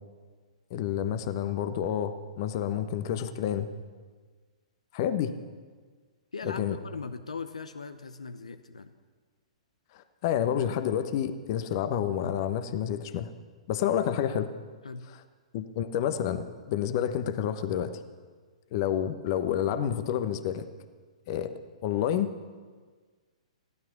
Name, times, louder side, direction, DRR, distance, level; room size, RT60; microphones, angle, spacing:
voice 1, 0.7-3.7 4.9-5.3 6.4-6.8 9.9-13.3 13.7-14.5 15.5-17.9 18.7-20.7 21.3-21.5 21.8-22.3, left 9 dB, 40° left, 10 dB, 1.1 m, -29 dB
voice 2, 6.3-8.9 14.8-15.1, left 4 dB, 70° left, 9 dB, 0.9 m, -39 dB
16.5 x 12.5 x 6.0 m, 1.5 s
figure-of-eight pair, 115°, 4 cm